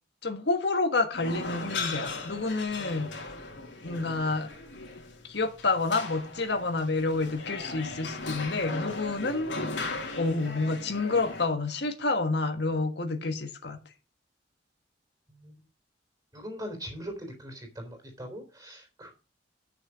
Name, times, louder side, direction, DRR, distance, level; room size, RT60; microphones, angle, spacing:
voice 1, 0.2-3.1 3.8-4.5 5.3-9.7 10.2-13.8, left 3 dB, 70° left, 6 dB, 1.4 m, -29 dB
sound 1, 1.1-11.4, left 3 dB, 85° left, 2.8 m, -37 dB
voice 2, 16.3-19.1, equal, 20° right, 3 dB, 3.8 m, -41 dB
8.7 x 6.6 x 6.2 m, 0.33 s
head